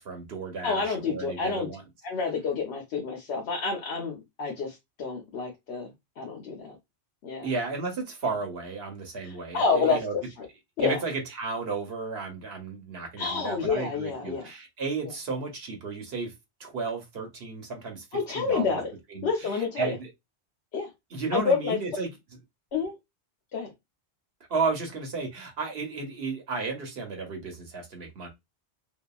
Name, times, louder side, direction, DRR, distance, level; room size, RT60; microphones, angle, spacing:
voice 1, 0.0-1.8 7.4-10.1 10.8-16.3 16.6-18.8 19.1-20.1 21.1-22.1 24.5-28.3, right 4 dB, 60° right, 1.0 m, -33 dB
voice 2, 0.6-1.7 2.0-5.9 6.2-6.8 7.2-7.5 9.2-10.5 10.8-11.0 13.2-14.5 18.1-18.9 19.2-19.9 20.7-20.9 21.3-21.8 22.7-22.9 23.5-23.7, left 5 dB, 70° left, 1.0 m, -28 dB
2.8 x 2.3 x 2.3 m
omnidirectional pair, 1.2 m